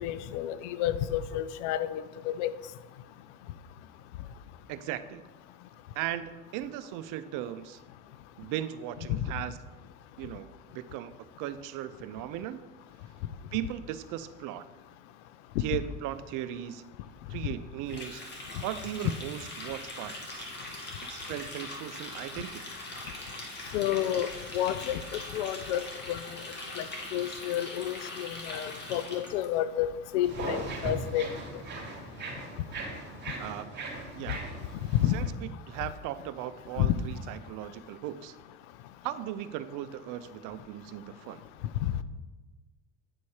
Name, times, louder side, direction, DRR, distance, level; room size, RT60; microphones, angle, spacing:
voice 1, 0.0-2.5 9.1-9.2 17.4-17.5 23.7-24.3 24.5-25.0 25.3-25.8 26.1-26.2 26.8-26.9 27.1-31.3 34.3-34.4 35.0-35.2 36.8-36.9, left 12 dB, 80° left, 14 dB, 0.6 m, -30 dB
voice 2, 4.7-5.2 5.9-7.8 8.4-9.6 10.2-11.1 11.4-12.6 13.5-14.7 15.6-16.8 17.3-18.2 18.6-20.5 21.1-22.6 33.4-33.8 34.2-34.4 35.1-38.4 39.0-41.4, right 12 dB, 60° right, 13 dB, 0.6 m, -37 dB
Water tap faucet, 17.9-29.4, left 2 dB, 30° left, 1.9 m, -41 dB
sound 1, 30.2-35.3, right 3 dB, 30° right, 2.4 m, -39 dB
9.7 x 4.2 x 4.8 m, 1.2 s
supercardioid pair, 90°, 36 cm